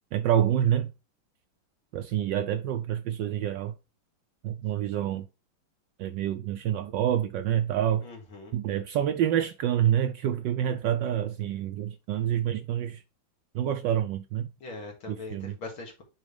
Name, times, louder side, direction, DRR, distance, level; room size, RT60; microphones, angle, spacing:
voice 1, 0.1-0.9 1.9-3.7 4.4-5.3 6.0-8.1 8.5-13.0 13.5-14.5 15.1-15.5, right 10 dB, 75° right, 1.1 m, -27 dB
voice 2, 8.0-8.5 14.6-16.0, left 3 dB, 75° left, 2.9 m, -41 dB
8.9 x 3.5 x 3.3 m
omnidirectional pair, 2.3 m